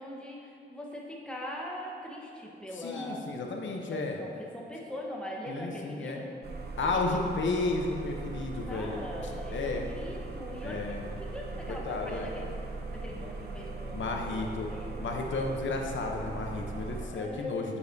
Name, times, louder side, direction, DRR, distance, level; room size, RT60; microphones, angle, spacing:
voice 1, 0.0-3.2 3.7-6.3 6.9-7.4 8.6-12.5 12.9-15.5 16.9-17.8, left 1 dB, 5° left, -3 dB, 1.0 m, -42 dB
voice 2, 2.8-4.2 5.5-6.2 6.8-9.0 9.5-9.8 10.6-11.0 11.7-12.3 13.9-14.7 15.0-17.7, left 3 dB, 90° left, 1 dB, 0.7 m, -32 dB
sound 1, 6.4-17.1, right 3 dB, 60° right, 0.7 m, -39 dB
9.6 x 7.0 x 2.7 m, 2.5 s
wide cardioid pair, 170°, 19 cm